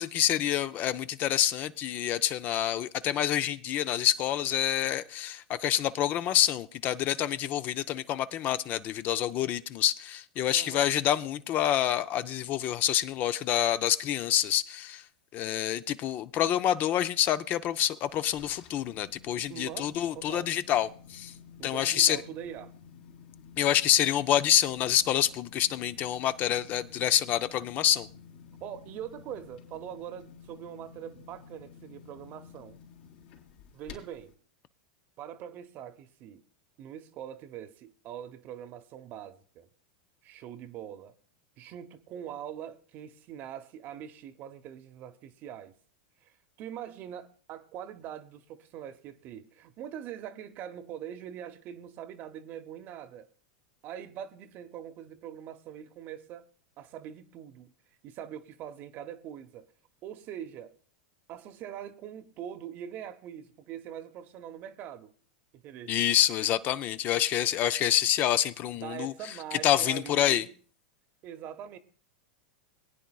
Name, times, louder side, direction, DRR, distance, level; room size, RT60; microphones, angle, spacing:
voice 1, 0.0-15.0 15.3-21.3 21.6-22.2 23.6-28.1 65.9-69.1 69.5-70.4, left 11 dB, 40° left, 0.5 m, -27 dB
voice 2, 10.5-10.9 19.5-20.5 21.6-22.7 28.6-32.8 33.7-34.3 35.2-36.4 36.8-39.7 40.2-41.1 41.6-45.7 46.2-53.3 53.8-56.5 56.8-57.7 58.0-59.7 60.0-60.8 61.3-65.1 65.5-66.1 68.7-70.5 71.2-71.8, right 10 dB, 45° right, 0.8 m, -43 dB
sound 1, 18.0-34.3, left 7 dB, 70° left, 3.1 m, -52 dB
21.5 x 9.2 x 2.3 m
hypercardioid pair, 110°, 5 cm